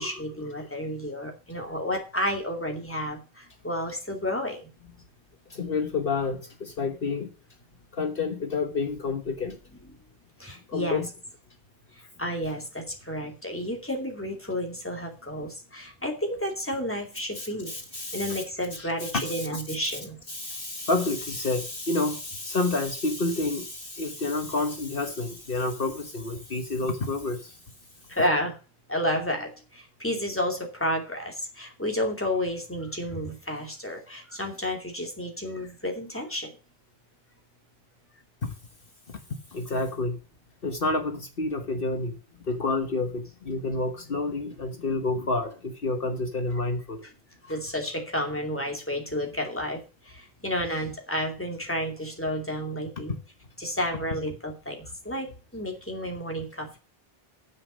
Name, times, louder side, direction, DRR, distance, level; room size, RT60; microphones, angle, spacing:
voice 1, 0.0-4.7 10.4-11.0 11.9-17.8 18.1-20.2 28.1-28.6 28.9-36.5 47.4-53.1 53.6-56.8, equal, 10° left, 2.6 m, -31 dB
voice 2, 5.5-7.3 7.9-9.6 10.5-11.1 17.4-18.4 18.7-19.6 19.9-20.0 20.3-27.6 38.4-38.5 39.1-39.2 39.5-40.2 40.6-42.1 42.4-47.0 53.1-53.2, left 3 dB, 60° left, 1.4 m, -29 dB
9.7 x 7.3 x 6.2 m
omnidirectional pair, 1.0 m